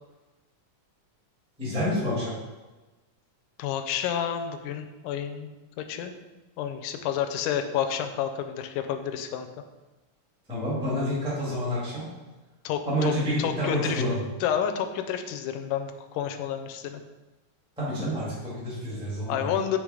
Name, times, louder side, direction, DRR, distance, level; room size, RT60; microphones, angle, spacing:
voice 1, 1.6-2.3 10.5-12.0 12.9-14.2 17.8-19.5, equal, 5° right, -9 dB, 0.7 m, -28 dB
voice 2, 3.6-5.5 5.8-6.1 6.6-9.5 12.7-13.1 13.4-14.0 14.4-17.0 19.3-19.8, left 9 dB, 85° left, 7 dB, 2.1 m, -30 dB
6.6 x 3.5 x 4.8 m, 1.2 s
omnidirectional pair, 3.7 m